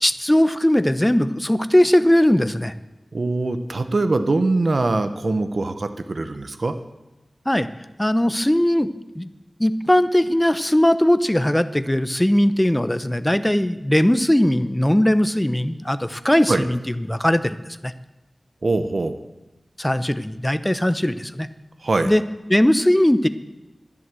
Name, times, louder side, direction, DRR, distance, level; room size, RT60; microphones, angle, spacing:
voice 1, 0.0-2.7 7.5-7.7 8.0-8.9 9.2-9.3 9.6-17.6 17.8-17.9 19.8-21.5 22.1-22.2 22.5-23.3, left 1 dB, 15° left, 12 dB, 0.7 m, -19 dB
voice 2, 3.1-6.7 16.5-16.7 18.6-19.2 21.8-22.1, right 2 dB, 65° right, 10 dB, 0.9 m, -22 dB
11.0 x 11.0 x 7.6 m, 1.0 s
wide cardioid pair, 60°, 0 cm